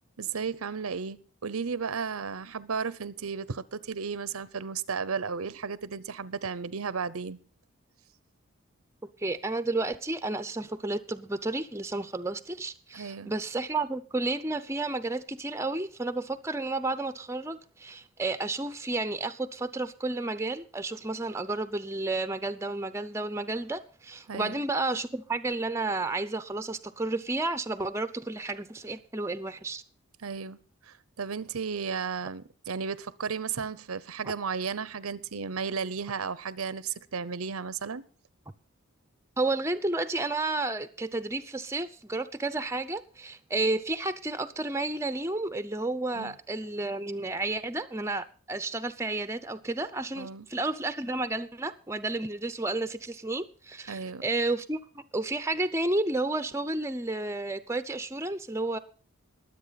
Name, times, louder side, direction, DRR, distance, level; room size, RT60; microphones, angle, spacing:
voice 1, 0.2-7.4 12.9-13.3 24.3-24.6 30.2-30.6 30.9-38.0 46.1-46.3 50.2-50.5 53.9-54.2, right 5 dB, 85° right, 0.8 m, -34 dB
voice 2, 9.2-29.8 39.4-58.8, right 2 dB, 15° right, 0.6 m, -31 dB
22.0 x 8.2 x 4.1 m
head